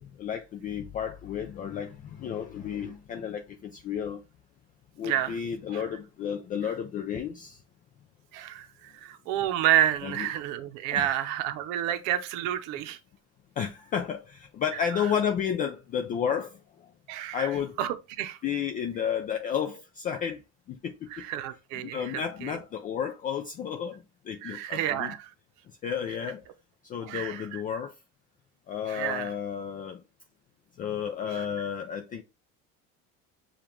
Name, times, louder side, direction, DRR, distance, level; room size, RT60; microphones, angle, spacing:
voice 1, 0.0-4.2 5.0-7.6 10.0-10.3 10.9-11.2 13.6-16.9 17.3-17.8 18.4-20.4 20.7-21.2 21.8-25.1 25.8-26.4 26.8-27.9 28.7-30.0 30.8-32.2, left 8 dB, 30° left, 0.3 m, -32 dB
voice 2, 5.0-5.4 5.7-5.8 8.3-13.0 14.9-15.1 17.1-17.5 17.8-18.4 21.1-22.6 24.4-25.3 27.0-27.6 28.9-29.3 31.3-31.5, right 11 dB, 75° right, 0.7 m, -30 dB
6.8 x 2.4 x 2.9 m
cardioid pair, 160°, 31 cm